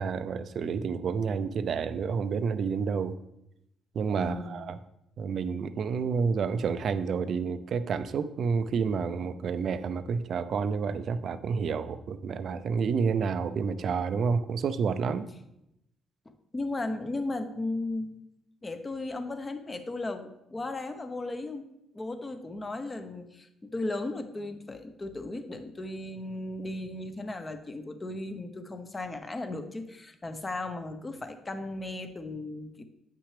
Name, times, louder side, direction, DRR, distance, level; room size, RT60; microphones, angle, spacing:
voice 1, 0.0-3.2 3.9-4.8 5.2-15.3, right 5 dB, 60° right, 12 dB, 0.5 m, -29 dB
voice 2, 4.2-4.8 16.5-18.2 18.6-21.7 21.9-32.8, left 2 dB, 25° left, 8 dB, 0.8 m, -36 dB
8.4 x 5.9 x 3.3 m, 0.83 s
cardioid pair, 90°, 0 cm